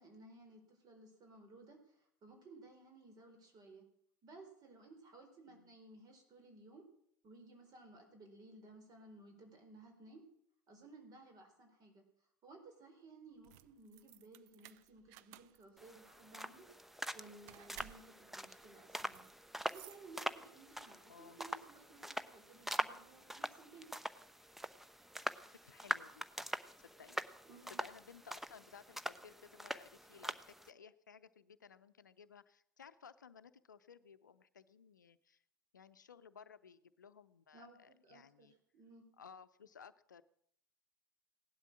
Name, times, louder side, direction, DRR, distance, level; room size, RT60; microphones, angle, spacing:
voice 1, 0.0-3.8 4.2-6.8 7.2-10.2 10.7-12.0 12.4-16.6 17.1-19.2 19.7-23.9 27.5-27.8 37.5-38.5 38.7-39.0, right 2 dB, 40° right, 4 dB, 4.4 m, -58 dB
sound 1, 13.3-20.7, right 14 dB, 55° right, 0.7 m, -59 dB
sound 2, 15.8-30.7, equal, 5° right, 0.8 m, -44 dB
voice 2, 25.5-26.5 26.8-27.2 27.7-35.4 35.7-38.5 39.2-40.2, left 6 dB, 80° left, 14 dB, 0.6 m, -58 dB
17.0 x 11.5 x 6.2 m, 0.70 s
figure-of-eight pair, 70°, 10 cm